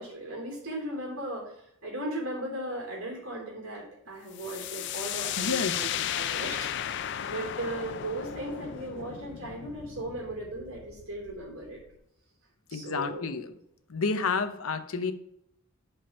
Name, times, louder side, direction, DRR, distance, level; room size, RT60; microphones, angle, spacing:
voice 1, 0.0-11.8 12.7-13.3, right 1 dB, 90° right, -2 dB, 3.1 m, -37 dB
sound 1, 4.3-11.9, left 10 dB, 55° left, 0.4 m, -35 dB
voice 2, 5.4-5.9 8.6-8.7 12.7-13.5 13.9-15.1, left 4 dB, 90° left, 9 dB, 0.7 m, -30 dB
5.6 x 5.5 x 5.5 m, 0.76 s
head